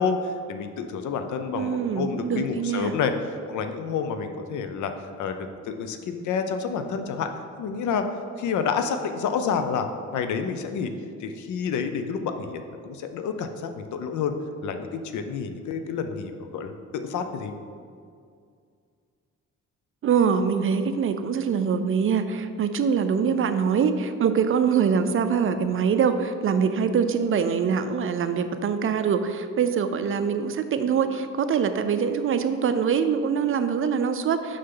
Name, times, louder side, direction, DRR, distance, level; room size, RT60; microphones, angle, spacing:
voice 1, 0.0-3.1 3.5-4.9 5.2-7.3 7.6-8.0 8.4-9.9 10.1-10.9 11.2-14.3 14.6-17.5, left 6 dB, 75° left, 7 dB, 0.6 m, -29 dB
voice 2, 1.5-2.9 20.0-34.6, right 6 dB, 45° right, 9 dB, 0.5 m, -24 dB
6.6 x 5.5 x 3.8 m, 2.3 s
cardioid pair, 90°, 30 cm